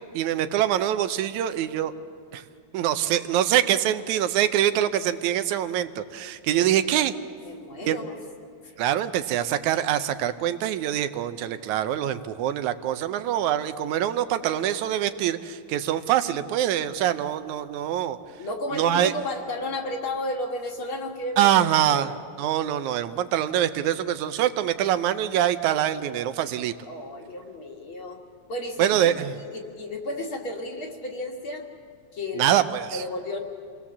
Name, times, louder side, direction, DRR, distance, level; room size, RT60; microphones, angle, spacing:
voice 1, 0.1-1.9 2.3-2.4 2.7-7.1 7.9-8.0 8.8-18.2 18.7-19.1 21.4-22.1 22.4-26.7 28.8-29.3 32.4-33.0, right 11 dB, 80° right, 10 dB, 2.1 m, -24 dB
voice 2, 7.4-8.2 8.6-8.7 18.4-22.1 26.9-28.2 28.5-31.7 32.1-32.6 32.9-33.4, left 1 dB, 50° left, 1 dB, 2.4 m, -33 dB
27.0 x 19.5 x 7.3 m, 2.2 s
omnidirectional pair, 3.4 m